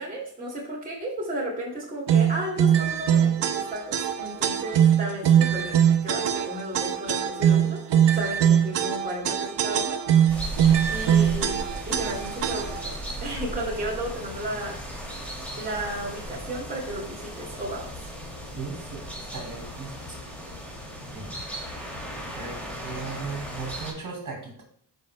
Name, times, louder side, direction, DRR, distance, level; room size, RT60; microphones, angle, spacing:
voice 1, 0.0-5.7 6.0-10.0 10.9-14.9 15.6-17.9, right 1 dB, 20° right, -4 dB, 2.4 m, -33 dB
sound 1, 2.1-12.9, right 9 dB, 80° right, 0.8 m, -22 dB
sound 2, 10.3-23.9, equal, 5° left, 2.5 m, -37 dB
voice 2, 18.6-20.1 21.1-21.4 22.3-24.6, right 4 dB, 50° right, 0 dB, 2.9 m, -37 dB
14.0 x 5.5 x 2.2 m, 0.62 s
wide cardioid pair, 125°, 42 cm